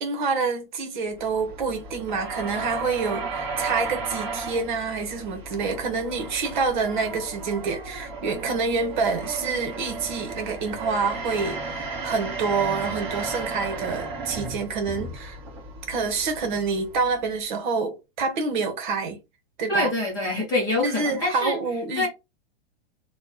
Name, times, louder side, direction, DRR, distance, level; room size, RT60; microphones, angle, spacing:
voice 1, 0.0-15.4 15.9-19.2 19.6-19.9 20.8-22.1, right 4 dB, 50° right, 1.1 m, -27 dB
sound 1, 1.1-17.4, right 3 dB, 15° right, 1.1 m, -35 dB
voice 2, 19.7-21.6 22.0-22.1, left 2 dB, 10° left, 0.8 m, -25 dB
3.1 x 2.3 x 3.9 m
supercardioid pair, 175°, 31 cm